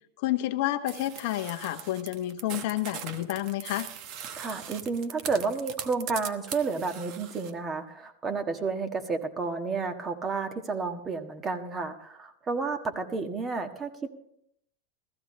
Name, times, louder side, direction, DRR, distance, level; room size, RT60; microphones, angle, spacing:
voice 1, 0.2-3.9, left 14 dB, 65° left, 9 dB, 0.9 m, -30 dB
sound 1, 0.9-7.5, right 8 dB, 50° right, 1.0 m, -41 dB
voice 2, 4.4-14.1, right 4 dB, 25° right, 6 dB, 1.4 m, -31 dB
15.0 x 14.5 x 3.2 m, 0.71 s
hypercardioid pair, 105°, 0 cm